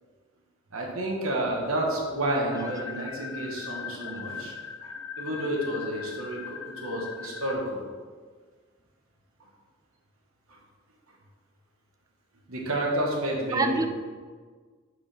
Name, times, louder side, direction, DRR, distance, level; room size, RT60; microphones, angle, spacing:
voice 1, 0.7-4.5 4.8-7.8 9.4-9.5 10.5-10.6 12.5-13.9, right 1 dB, 85° right, -1 dB, 1.3 m, -30 dB
sound 1, 2.5-7.5, left 7 dB, 85° left, 0.5 m, -39 dB
voice 2, 2.6-3.3 4.0-4.1 4.4-4.5 13.5-13.9, right 3 dB, 15° right, 8 dB, 0.4 m, -30 dB
8.0 x 4.7 x 3.3 m, 1.5 s
head